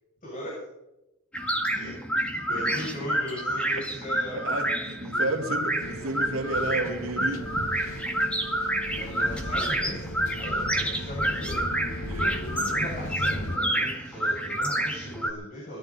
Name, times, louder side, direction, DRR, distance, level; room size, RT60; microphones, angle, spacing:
voice 1, 0.2-0.5 1.7-1.9 2.2-4.4 8.8-11.6 12.6-15.8, equal, 35° left, 7.6 m, -38 dB
sound 1, 1.3-15.3, right 1 dB, 5° left, 2.1 m, -29 dB
voice 2, 4.4-7.5 12.0-12.4, right 2 dB, 75° right, 2.8 m, -31 dB
sound 2, 5.8-13.6, left 1 dB, 75° left, 1.6 m, -36 dB
21.0 x 14.5 x 4.3 m
head